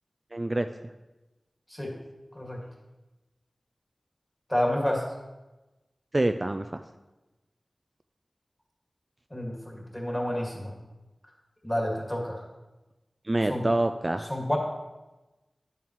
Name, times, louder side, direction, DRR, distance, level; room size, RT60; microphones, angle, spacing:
voice 1, 0.3-0.7 6.1-6.8 13.2-14.3, right 1 dB, 30° right, 8 dB, 0.3 m, -26 dB
voice 2, 4.5-5.0 9.3-10.7 11.6-12.4 13.5-13.6 14.3-14.6, left 1 dB, 15° left, -1 dB, 1.9 m, -29 dB
10.0 x 7.2 x 3.0 m, 1.1 s
wide cardioid pair, 75°, 0 cm